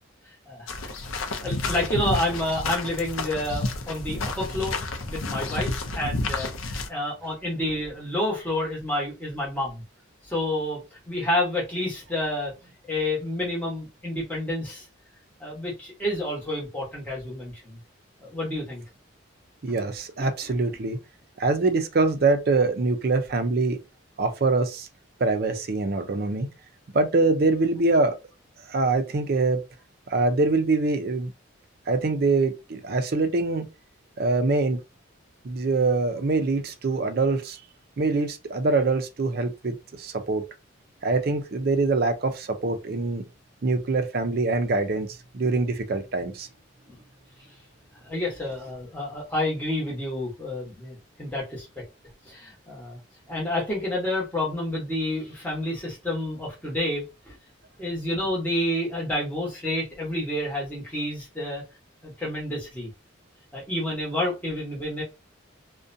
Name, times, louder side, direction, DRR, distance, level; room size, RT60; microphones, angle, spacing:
voice 1, 0.5-0.9 1.4-4.8 5.0-9.8 10.2-12.5 12.9-14.8 15.4-17.8 18.2-18.8 20.2-20.5 46.9-47.0 48.0-51.7 52.3-53.0 53.3-57.3 57.8-61.6 62.0-62.9 63.5-65.0, left 1 dB, 10° left, 1.1 m, -29 dB
sound 1, 0.7-6.9, left 3 dB, 80° left, 0.5 m, -30 dB
voice 2, 19.6-21.0 21.4-23.8 24.2-24.9 25.2-26.5 26.9-28.1 28.7-29.6 30.1-31.3 31.9-33.7 34.2-34.8 35.4-37.6 38.0-40.4 41.0-43.2 43.6-45.1 45.3-46.5 53.5-53.6, right 3 dB, 50° right, 0.4 m, -24 dB
2.5 x 2.2 x 2.6 m
head